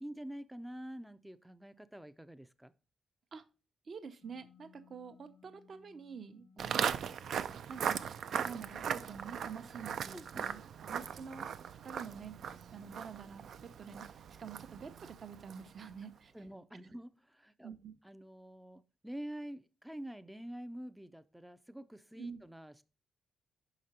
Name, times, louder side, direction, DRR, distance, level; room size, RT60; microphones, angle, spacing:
voice 1, 0.0-2.7 6.6-6.7 10.1-10.6 11.1-11.2 16.3-17.7 18.0-22.8, right 1 dB, 5° right, 12 dB, 0.4 m, -47 dB
voice 2, 3.8-7.0 7.7-8.1 8.4-11.5 11.8-12.4 12.7-16.3 17.6-18.0 22.2-22.4, right 6 dB, 50° right, 9 dB, 0.7 m, -48 dB
sound 1, 4.2-9.7, left 6 dB, 70° left, 0.6 m, -63 dB
Walk footsteps, 6.6-15.8, right 8 dB, 75° right, 0.4 m, -39 dB
5.8 x 5.0 x 4.1 m, 0.32 s
wide cardioid pair, 140°, 0 cm